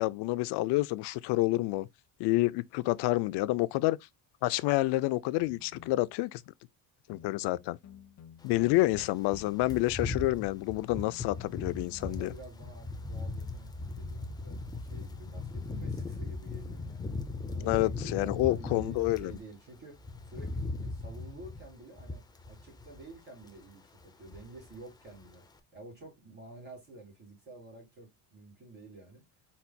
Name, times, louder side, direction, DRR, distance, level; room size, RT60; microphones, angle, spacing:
voice 1, 0.0-1.9 2.2-4.0 4.4-6.5 7.1-7.8 8.4-12.3 17.6-19.3, left 19 dB, 70° left, 0.5 m, -28 dB
sound 1, 5.4-6.2 7.1-10.1 11.0-12.1, left 8 dB, 40° left, 1.0 m, -53 dB
sound 2, 8.5-19.4 19.8-23.2 23.4-23.7 24.0-24.8 25.1-25.3, left 3 dB, 10° left, 0.3 m, -39 dB
voice 2, 8.5-8.9 12.0-17.2 17.5-25.4 25.7-29.3, right 2 dB, 25° right, 2.9 m, -50 dB
4.4 x 4.2 x 2.2 m
cardioid pair, 165°, 42 cm